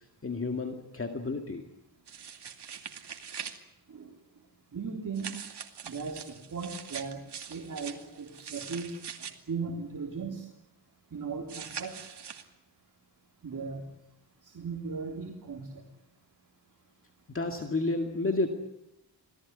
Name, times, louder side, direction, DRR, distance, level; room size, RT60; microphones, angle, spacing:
voice 1, 0.2-1.6 17.3-18.5, left 2 dB, 30° left, 5 dB, 2.1 m, -31 dB
sound 1, 2.1-3.6 5.2-9.3 11.5-12.4, right 7 dB, 75° right, 2.6 m, -42 dB
voice 2, 4.7-5.4 5.8-9.0 9.5-10.5 11.1-12.1 13.4-13.9 14.4-15.8, right 5 dB, 50° right, 0 dB, 3.6 m, -37 dB
27.0 x 18.0 x 9.6 m, 0.82 s
wide cardioid pair, 135°, 41 cm